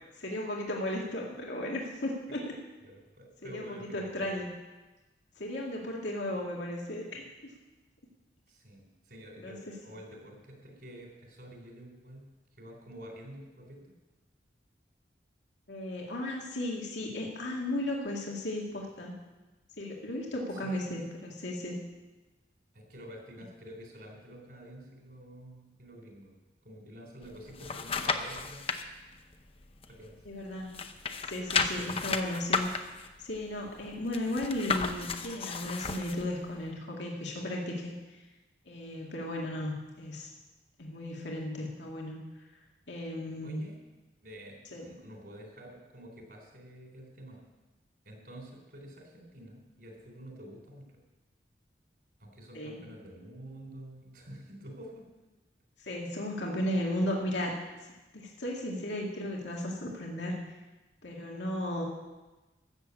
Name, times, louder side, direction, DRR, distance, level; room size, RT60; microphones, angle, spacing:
voice 1, 0.2-2.5 3.4-4.5 5.4-7.2 9.4-9.6 15.7-19.2 19.8-21.8 30.3-30.8 31.3-32.7 33.2-37.9 38.7-40.3 40.8-42.2 42.9-43.6 44.7-44.9 52.5-52.8 55.8-57.6 58.1-60.4 61.0-61.8, left 1 dB, 85° left, -2 dB, 2.2 m, -35 dB
voice 2, 2.8-4.4 5.5-5.6 8.5-12.3 12.6-13.9 20.5-21.0 22.7-26.3 26.6-28.8 29.9-30.2 43.4-43.8 44.2-47.4 48.0-51.0 52.2-55.1 56.1-56.2, equal, 60° right, 1 dB, 3.8 m, -49 dB
sound 1, 27.2-28.8 29.3-30.4 30.7-36.2 36.7-36.8, left 5 dB, 30° left, 0.7 m, -33 dB
14.0 x 7.3 x 8.4 m, 1.1 s
head